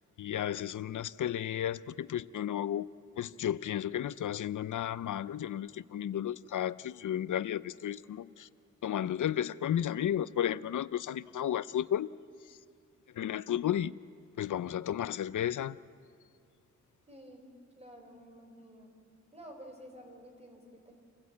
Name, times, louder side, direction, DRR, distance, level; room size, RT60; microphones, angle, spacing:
voice 1, 0.2-2.9 3.2-8.5 8.8-12.1 12.5-12.6 13.1-14.0 14.4-15.8, left 10 dB, 90° left, 17 dB, 0.5 m, -33 dB
voice 2, 17.1-17.5 17.8-19.0 19.3-20.9, equal, 20° right, 2 dB, 3.7 m, -51 dB
27.0 x 15.5 x 8.4 m, 2.5 s
wide cardioid pair, 150°, 30 cm